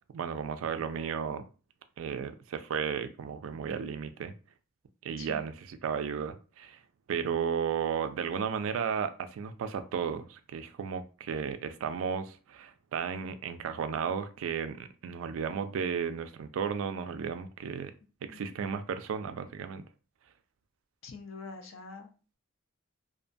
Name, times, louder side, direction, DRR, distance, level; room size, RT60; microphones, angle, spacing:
voice 1, 0.1-1.5 2.0-4.3 5.0-6.8 7.1-17.9 18.2-19.8, right 7 dB, 80° right, 10 dB, 0.3 m, -34 dB
voice 2, 18.2-18.5 21.0-22.1, left 4 dB, 80° left, 4 dB, 0.6 m, -45 dB
2.6 x 2.2 x 2.5 m, 0.35 s
head